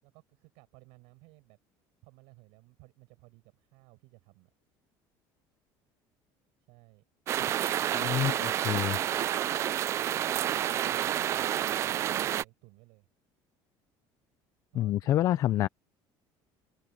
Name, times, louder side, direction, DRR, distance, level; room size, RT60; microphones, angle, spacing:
voice 1, 0.0-1.6 2.0-4.5 6.7-7.0 10.9-11.6 12.0-13.1 14.7-15.4, right 27 dB, 85° right, 6.9 m, -58 dB
sound 1, 7.3-12.4, right 11 dB, 30° right, 0.3 m, -29 dB
voice 2, 7.9-9.0 14.8-15.7, left 13 dB, 40° left, 0.4 m, -27 dB
cardioid pair, 175°, 9 cm